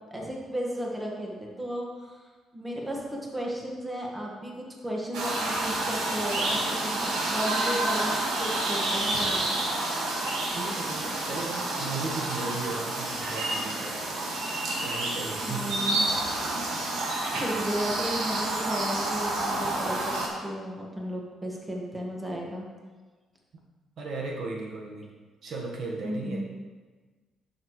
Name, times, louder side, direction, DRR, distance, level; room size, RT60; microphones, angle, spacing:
voice 1, 0.1-9.6 15.4-16.1 16.4-17.0 17.3-22.7 26.0-26.4, equal, 10° right, -2 dB, 1.5 m, -34 dB
sound 1, 5.1-20.3, right 2 dB, 80° right, 1.7 m, -29 dB
voice 2, 10.5-15.7 24.0-25.1 25.4-26.4, right 3 dB, 60° right, 0 dB, 1.3 m, -36 dB
10.0 x 6.6 x 3.1 m, 1.4 s
cardioid pair, 115°, 0 cm